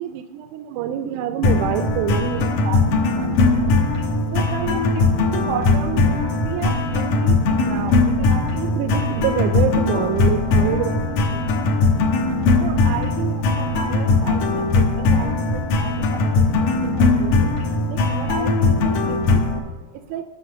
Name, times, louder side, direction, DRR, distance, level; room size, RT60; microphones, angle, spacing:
voice 1, 0.0-2.8 3.1-3.8 4.3-5.1 5.3-6.1 6.4-11.4 12.6-17.5 17.9-19.4 20.1-20.2, right 9 dB, 85° right, 8 dB, 2.1 m, -29 dB
sound 1, 1.4-19.6, left 3 dB, 80° left, 2.6 m, -19 dB
10.0 x 6.0 x 6.5 m, 1.4 s
omnidirectional pair, 3.5 m